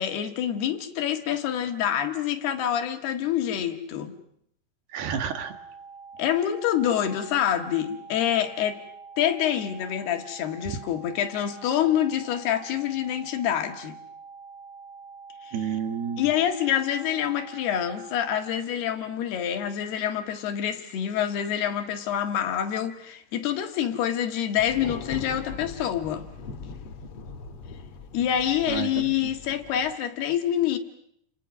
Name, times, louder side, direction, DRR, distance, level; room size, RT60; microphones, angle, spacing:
voice 1, 0.0-4.2 6.2-8.8 9.2-14.0 15.4-15.5 16.2-26.3 28.1-30.8, left 10 dB, 75° left, 3.7 m, -26 dB
voice 2, 4.9-5.5 15.5-16.3 28.7-29.3, right 7 dB, 75° right, 3.7 m, -30 dB
sound 1, 5.3-18.4, right 5 dB, 40° right, 6.8 m, -45 dB
Thunder, 24.6-29.9, left 4 dB, 45° left, 2.2 m, -40 dB
30.0 x 29.0 x 6.2 m
omnidirectional pair, 4.8 m